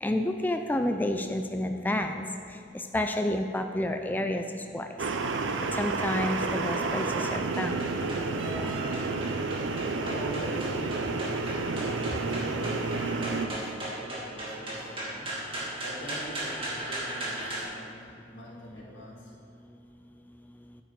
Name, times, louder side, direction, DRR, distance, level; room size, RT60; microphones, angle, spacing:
voice 1, 0.0-2.2 2.9-4.4 4.7-4.9 5.8-8.3, left 1 dB, 10° left, 5 dB, 0.3 m, -30 dB
sound 1, 5.0-13.5, right 3 dB, 80° right, 0.6 m, -30 dB
sound 2, 6.4-17.6, right 1 dB, 30° right, 2.2 m, -38 dB
voice 2, 9.7-19.3, equal, 90° left, -4 dB, 2.2 m, -44 dB
9.1 x 8.9 x 4.0 m, 2.5 s
head